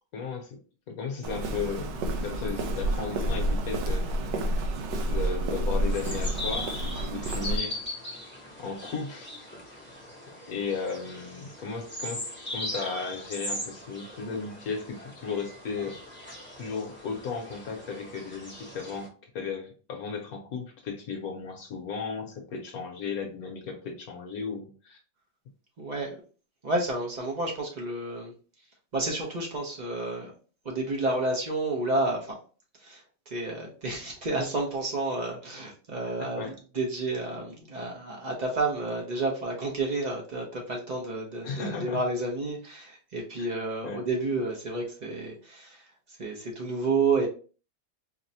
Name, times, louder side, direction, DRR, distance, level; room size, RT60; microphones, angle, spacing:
voice 1, 0.1-0.6 0.9-4.1 5.1-7.8 8.6-9.3 10.5-16.0 16.6-19.1 19.3-25.0 36.2-36.5 41.4-42.0 43.4-43.5 43.8-44.0, left 5 dB, 65° left, 3 dB, 1.1 m, -35 dB
Walk footsteps, 1.2-7.6, right 1 dB, 90° right, 1.3 m, -29 dB
sound 1, 5.9-19.1, left 1 dB, 15° left, 0.3 m, -39 dB
voice 2, 25.8-26.2 26.6-28.7 28.9-30.3 30.6-32.4 32.7-47.3, right 2 dB, 70° right, -1 dB, 0.4 m, -30 dB
4.7 x 2.1 x 2.7 m, 0.38 s
omnidirectional pair, 1.9 m